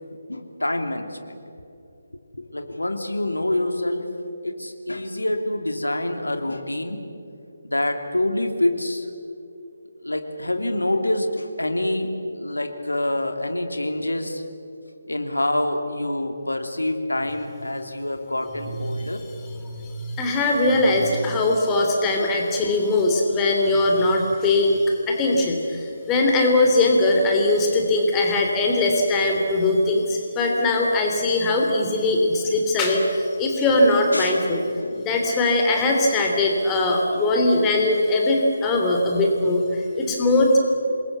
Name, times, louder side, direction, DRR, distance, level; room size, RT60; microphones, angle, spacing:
voice 1, 0.3-1.4 2.3-4.1 4.4-7.0 7.6-9.1 10.0-14.4 15.1-19.2 20.5-20.6 34.1-34.4 34.8-35.0, left 1 dB, 75° left, 6 dB, 3.0 m, -26 dB
voice 2, 19.6-34.6 35.0-40.6, left 2 dB, 15° left, 1 dB, 3.0 m, -20 dB
27.0 x 22.0 x 8.4 m, 2.7 s
figure-of-eight pair, 150°, 0 cm